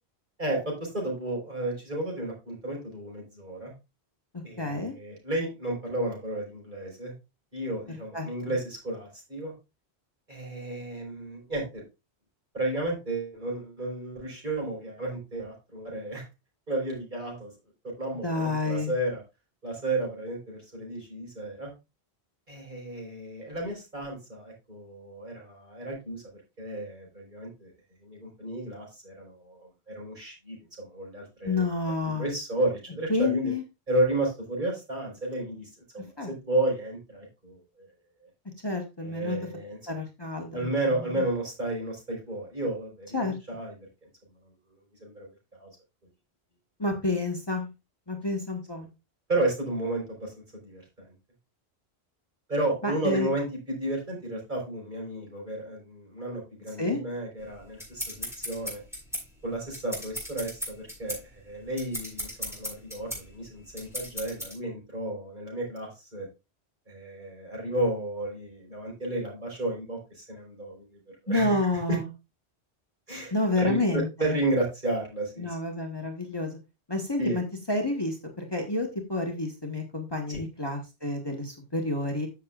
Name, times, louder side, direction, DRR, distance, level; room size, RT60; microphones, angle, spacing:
voice 1, 0.4-3.7 4.4-7.1 7.5-9.5 10.3-11.8 12.5-16.2 16.7-17.5 18.0-19.2 19.6-21.7 22.5-27.7 28.0-31.7 32.1-33.5 33.9-35.7 35.9-37.9 39.0-39.8 40.5-43.8 45.0-45.7 49.3-51.1 52.5-58.8 59.4-66.3 66.9-71.6 71.9-72.0 73.1-75.5 77.2-77.4 80.3-80.4, right 1 dB, 45° right, -1 dB, 4.6 m, -32 dB
voice 2, 4.3-4.9 8.1-8.3 18.2-18.9 31.4-32.3 33.1-33.6 36.2-36.3 38.6-39.4 39.9-40.7 41.1-41.2 43.1-43.4 46.8-47.7 48.1-48.9 52.8-53.3 56.8-57.0 71.3-72.1 73.3-74.4 75.4-76.6 76.9-82.3, left 2 dB, 25° left, 2 dB, 1.5 m, -29 dB
sound 1, 57.4-64.5, equal, ahead, 5.3 m, -37 dB
14.0 x 6.6 x 2.4 m, 0.26 s
omnidirectional pair, 1.1 m